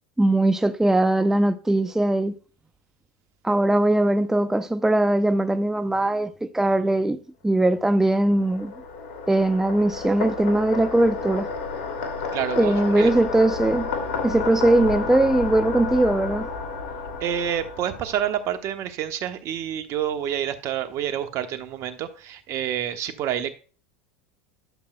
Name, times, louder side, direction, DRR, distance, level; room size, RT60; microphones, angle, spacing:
voice 1, 0.2-2.4 3.4-7.2 7.4-8.7 9.3-11.5 12.6-13.9 14.2-16.5, right 1 dB, 5° right, 0.6 m, -20 dB
sound 1, 7.8-18.5, left 4 dB, 75° left, 2.4 m, -31 dB
voice 2, 12.3-13.1 17.2-23.5, right 10 dB, 50° right, 1.3 m, -28 dB
11.5 x 7.4 x 2.2 m
hypercardioid pair, 90°, 6 cm